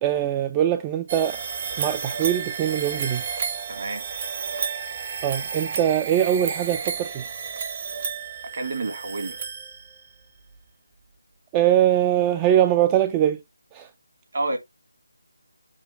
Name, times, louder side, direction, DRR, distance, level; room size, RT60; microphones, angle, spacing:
voice 1, 0.0-1.4 1.8-3.2 5.2-7.2 11.5-13.4 13.7-13.9, right 11 dB, 15° right, 0.3 m, -22 dB
sound 1, 1.1-10.1, right 6 dB, 30° right, 0.8 m, -32 dB
voice 2, 3.7-4.0 8.5-9.4 14.3-14.6, right 2 dB, 50° right, 1.7 m, -29 dB
7.3 x 2.4 x 5.4 m
figure-of-eight pair, 165°, 0 cm